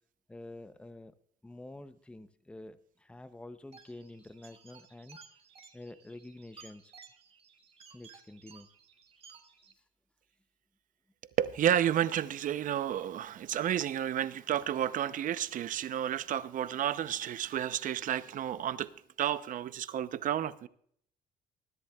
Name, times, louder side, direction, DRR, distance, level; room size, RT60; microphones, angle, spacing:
voice 1, 0.3-1.1 1.4-5.2 5.7-6.9 7.9-8.7, left 2 dB, 5° left, 0.6 m, -48 dB
sound 1, 3.7-9.7, right 5 dB, 35° right, 1.4 m, -56 dB
voice 2, 11.4-18.9 19.2-20.7, right 10 dB, 50° right, 0.6 m, -31 dB
21.0 x 10.5 x 2.3 m
cardioid pair, 110°, 17 cm